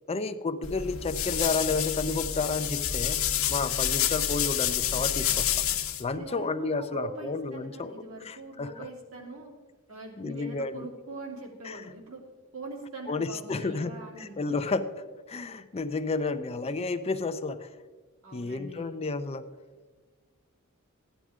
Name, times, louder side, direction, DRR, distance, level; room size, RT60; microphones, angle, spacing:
voice 1, 0.1-3.2 3.5-5.5 6.0-7.9 8.2-8.7 10.2-10.9 11.6-11.8 13.1-17.7 18.3-19.4, left 3 dB, 30° left, 10 dB, 0.4 m, -31 dB
sound 1, 0.6-6.0, left 10 dB, 75° left, 1.0 m, -28 dB
voice 2, 6.1-9.6 9.9-12.3 12.5-14.6 18.2-18.9, right 2 dB, 80° right, -2 dB, 3.0 m, -42 dB
14.5 x 10.0 x 3.6 m, 1.3 s
head